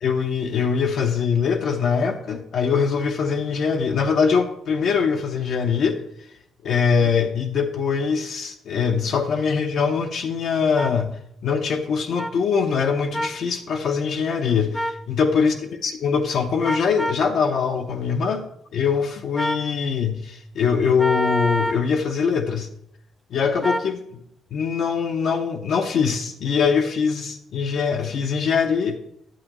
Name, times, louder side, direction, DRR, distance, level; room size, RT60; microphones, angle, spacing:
voice 1, 0.0-6.0 6.6-11.1 11.4-15.6 15.8-18.4 18.7-22.7 23.3-24.0 24.5-29.0, left 6 dB, 65° left, 3 dB, 0.7 m, -22 dB
sound 1, 10.8-10.9 12.2-12.3 13.1-13.4 14.7-15.0 16.6-17.2 19.4-19.7 21.0-21.8 23.6-23.9, equal, 10° left, 0.4 m, -26 dB
10.0 x 7.7 x 3.0 m, 0.74 s
cardioid pair, 90°, 0 cm